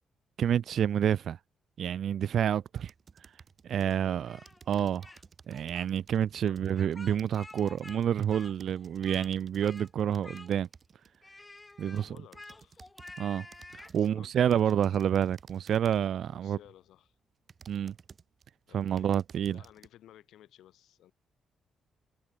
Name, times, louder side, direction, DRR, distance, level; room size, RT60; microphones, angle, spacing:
voice 1, 0.4-1.4 1.8-2.9 3.6-4.4 4.7-5.1 5.5-10.7 11.8-12.1 13.2-13.5 13.7-16.6 17.7-17.9 18.7-19.6, right 9 dB, 65° right, 0.4 m, -28 dB
sound 1, 2.8-4.0 4.5-11.2 11.7-13.2 13.5-14.2 14.5-16.2 16.8-16.9 17.5-18.5 18.8-19.9, right 5 dB, 40° right, 2.1 m, -56 dB
voice 2, 3.8-4.2 6.4-6.9 11.8-12.8 14.0-14.9 16.3-17.2 18.7-19.1 19.5-21.1, left 12 dB, 85° left, 2.4 m, -56 dB
Speech, 4.3-5.2 5.5-5.9 6.7-8.0 8.3-9.3 9.6-9.9 10.2-10.8 11.2-14.0, left 2 dB, 15° left, 0.7 m, -50 dB
cardioid pair, 110°, 0 cm